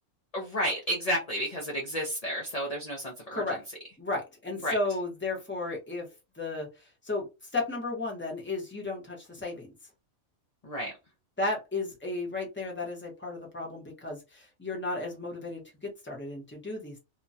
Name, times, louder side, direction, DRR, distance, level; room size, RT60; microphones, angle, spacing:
voice 1, 0.3-3.4 4.6-4.8 10.6-10.9, equal, 40° left, -2 dB, 0.5 m, -31 dB
voice 2, 4.0-6.1 6.4-6.7 7.0-7.2 7.5-9.7 11.4-17.0, left 2 dB, 10° left, -1 dB, 0.8 m, -34 dB
2.9 x 2.2 x 2.6 m, 0.26 s
omnidirectional pair, 1.4 m